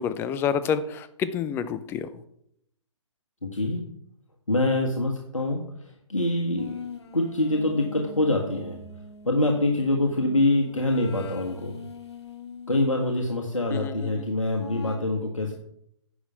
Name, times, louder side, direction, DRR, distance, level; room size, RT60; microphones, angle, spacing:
voice 1, 0.0-2.1 13.7-14.3, left 7 dB, 15° left, 13 dB, 0.5 m, -28 dB
voice 2, 3.4-3.8 4.5-6.8 7.1-8.8 9.2-11.8 12.7-15.5, left 2 dB, 90° left, 0 dB, 1.5 m, -25 dB
sound 1, 6.6-13.2 14.6-15.0, left 4 dB, 60° left, 1.5 m, -42 dB
10.0 x 6.2 x 5.6 m, 0.73 s
figure-of-eight pair, 130°, 16 cm